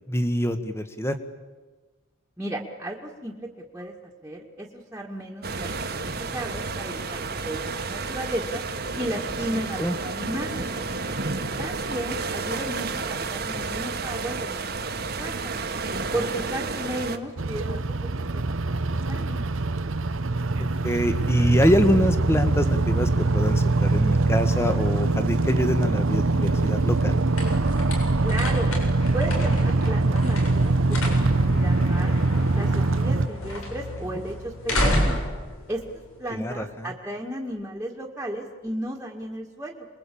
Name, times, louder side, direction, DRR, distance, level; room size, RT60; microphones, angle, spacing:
voice 1, 0.1-1.2 9.8-9.9 15.9-16.0 20.8-27.2 36.3-36.9, equal, 10° left, 9 dB, 1.5 m, -25 dB
voice 2, 2.4-3.5 3.7-3.9 4.2-8.6 8.9-10.7 11.6-15.5 16.1-19.4 28.2-28.7 29.1-32.1 32.5-35.2 35.7-35.8 36.2-39.9, right 1 dB, 10° right, -2 dB, 2.0 m, -34 dB
sound 1, 5.4-17.2, right 4 dB, 45° right, 1.5 m, -31 dB
sound 2, 17.4-33.3, right 2 dB, 70° right, 0.9 m, -23 dB
sound 3, 26.0-36.7, left 1 dB, 80° left, 7.4 m, -32 dB
28.0 x 22.0 x 8.6 m, 1.3 s
head